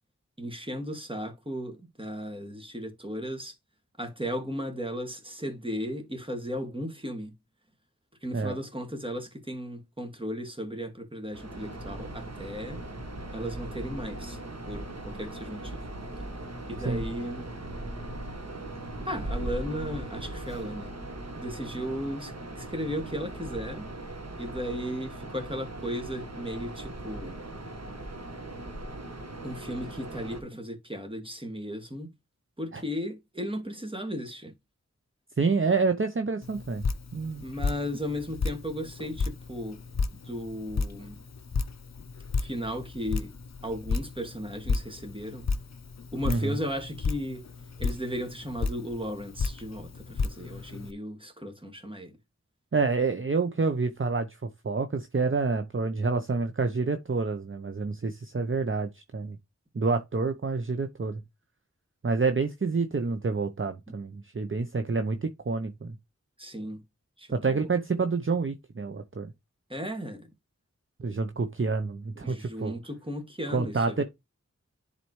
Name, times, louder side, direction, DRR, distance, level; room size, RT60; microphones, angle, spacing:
voice 1, 0.4-3.5 4.0-7.3 8.2-12.8 13.3-14.4 14.7-14.9 15.2-15.8 16.7-17.5 19.1-20.9 21.4-23.9 24.4-27.4 29.4-32.1 32.6-34.5 37.4-39.8 40.2-41.2 42.4-43.3 43.6-45.5 46.1-47.4 47.8-52.1 66.4-66.8 67.2-67.7 69.7-70.3 72.2-74.0, equal, 20° right, 2.1 m, -35 dB
sound 1, 11.3-30.4, right 1 dB, 60° right, 1.5 m, -39 dB
voice 2, 35.4-36.9 37.1-37.4 46.3-46.6 52.7-54.3 54.6-59.4 59.7-61.2 62.0-65.9 67.3-69.3 71.0-72.8 73.5-74.0, right 4 dB, 45° right, 0.7 m, -28 dB
Drip, 36.4-50.9, left 4 dB, 65° left, 0.7 m, -33 dB
10.5 x 4.1 x 3.1 m
wide cardioid pair, 55°, 29 cm